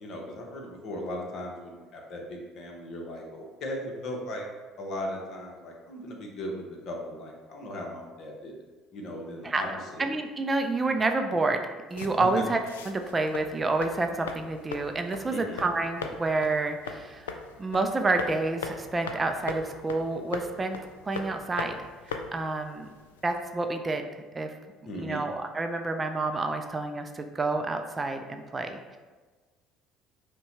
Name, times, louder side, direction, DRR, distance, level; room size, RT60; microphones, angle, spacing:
voice 1, 0.0-4.4 4.8-8.6 8.9-10.0 12.2-12.4 15.3-15.6 24.8-25.2, left 1 dB, 55° left, 0 dB, 1.0 m, -37 dB
voice 2, 10.0-11.6 11.9-12.6 12.9-20.8 21.0-21.8 22.1-22.9 23.2-24.0 24.3-24.6 24.9-29.0, right 3 dB, 25° right, 6 dB, 0.4 m, -29 dB
sound 1, 11.9-23.5, left 5 dB, 85° left, 0.3 m, -40 dB
5.4 x 2.2 x 4.2 m, 1.3 s
hypercardioid pair, 60°, 0 cm